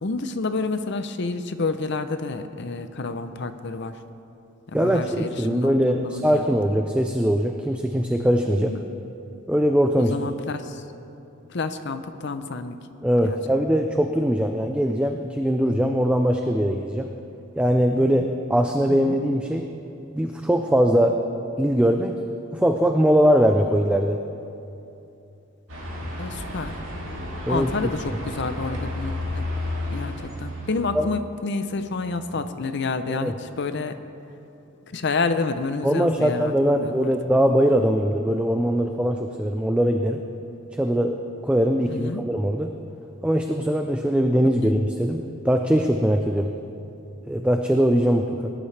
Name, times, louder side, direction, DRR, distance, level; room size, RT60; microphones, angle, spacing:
voice 1, 0.0-4.0 4.7-6.7 8.6-8.8 10.0-10.8 11.5-12.8 13.2-13.4 18.0-18.3 18.9-19.2 26.2-26.7 27.5-29.4 29.9-33.9 34.9-37.1 41.9-42.2 44.6-44.7, left 3 dB, 55° left, 10 dB, 0.6 m, -29 dB
voice 2, 4.7-8.7 9.5-10.1 13.0-17.1 17.6-19.7 20.1-21.2 21.6-22.2 22.5-24.2 27.5-27.7 30.9-31.1 33.1-33.3 35.8-40.2 40.8-41.2 41.4-42.7 43.2-46.5 47.3-48.5, equal, 5° right, 4 dB, 0.4 m, -21 dB
sound 1, 25.7-31.0, left 1 dB, 60° right, 2.5 m, -32 dB
19.0 x 11.5 x 3.3 m, 2.8 s
head